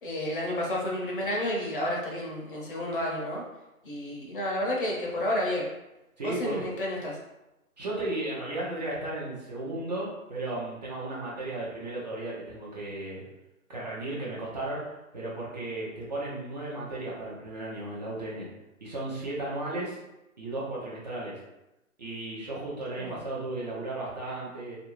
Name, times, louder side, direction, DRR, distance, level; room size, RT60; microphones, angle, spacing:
voice 1, 0.0-3.4 3.8-5.7 6.2-7.2 23.0-23.2, left 1 dB, 40° left, -2 dB, 0.7 m, -31 dB
voice 2, 6.2-6.7 7.8-13.2 13.7-18.5 18.8-20.0 20.4-21.4 22.0-24.8, right 2 dB, 30° right, -6 dB, 0.6 m, -35 dB
2.9 x 2.6 x 2.9 m, 0.97 s
hypercardioid pair, 150°, 43 cm